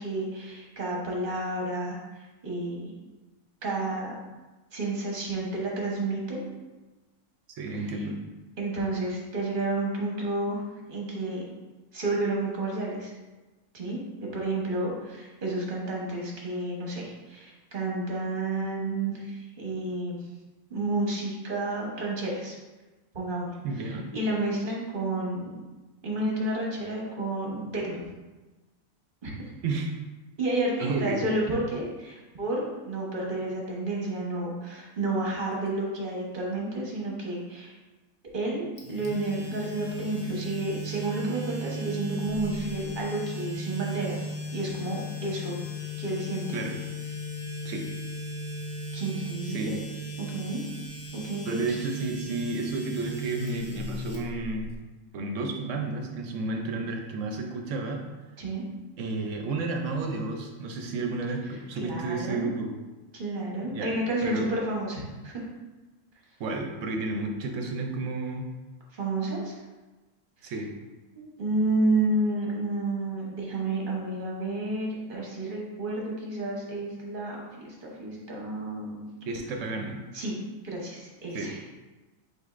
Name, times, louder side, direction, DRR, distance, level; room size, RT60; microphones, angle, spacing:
voice 1, 0.0-2.0 2.4-2.9 3.6-4.1 4.7-6.4 7.7-7.9 8.6-10.6 10.9-11.4 11.9-13.1 13.7-20.2 20.7-22.6 23.1-23.5 23.8-25.5 26.0-28.0 29.2-29.5 30.4-37.7 38.3-44.2 44.5-45.6 46.0-46.5 48.9-49.8 50.2-50.6 51.1-51.8 58.4-58.6 61.8-62.5 63.1-65.4 68.9-69.6 70.4-70.5 71.1-79.0 80.1-80.4 80.6-81.6, right 2 dB, 40° right, -2 dB, 1.1 m, -31 dB
voice 2, 7.6-8.2 23.6-24.1 29.6-29.9 30.8-31.3 46.5-46.8 47.6-47.9 49.5-49.7 51.4-54.7 55.1-58.0 59.0-62.7 63.7-64.5 66.4-68.5 70.4-70.7 79.3-80.0 81.3-81.5, right 3 dB, 70° right, 3 dB, 0.9 m, -32 dB
sound 1, 38.8-54.7, equal, 30° left, 0.4 m, -36 dB
5.0 x 4.3 x 2.5 m, 1.2 s
omnidirectional pair, 1.4 m